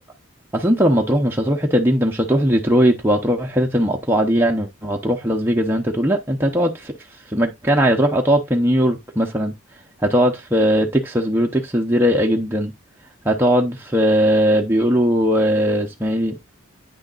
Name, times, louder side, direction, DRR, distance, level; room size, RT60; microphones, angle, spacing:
voice 1, 0.5-6.9 7.3-9.5 10.0-12.7 13.2-16.3, equal, 10° right, 0.7 m, -19 dB
9.0 x 6.3 x 2.4 m
head